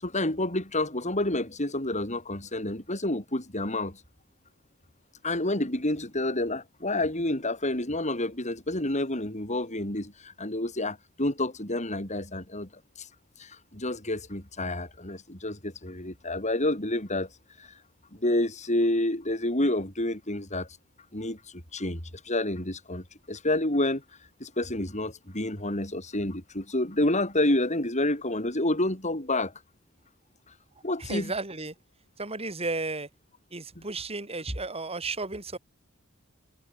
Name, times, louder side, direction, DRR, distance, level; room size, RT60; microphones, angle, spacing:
voice 1, 0.0-4.0 5.2-12.7 13.0-13.1 13.4-17.3 17.6-17.7 18.1-20.7 21.1-24.0 24.4-29.5 30.8-31.3 33.8-33.9, left 1 dB, 35° left, 7.2 m, -29 dB
voice 2, 31.0-31.7 32.2-33.1 33.5-35.6, right 3 dB, 30° right, 5.5 m, -33 dB
head